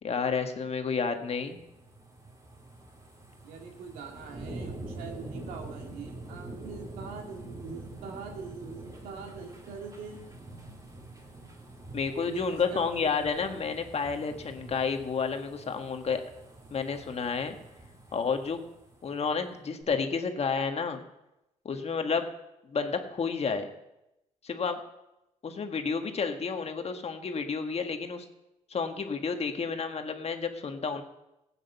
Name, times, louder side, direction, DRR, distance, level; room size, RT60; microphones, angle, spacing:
voice 1, 0.0-1.6 11.9-16.2 16.7-17.6 18.1-18.6 19.0-21.0 21.6-22.2 22.7-23.7 24.4-24.8 25.4-28.2 28.7-31.0, left 5 dB, 45° left, 6 dB, 1.7 m, -30 dB
sound 1, 1.2-19.4 19.8-19.9, right 2 dB, 25° right, 3.6 m, -46 dB
voice 2, 3.4-10.3 12.2-13.1, right 4 dB, 85° right, 2 dB, 2.4 m, -43 dB
15.5 x 9.2 x 5.7 m, 0.91 s
supercardioid pair, 65°, 14 cm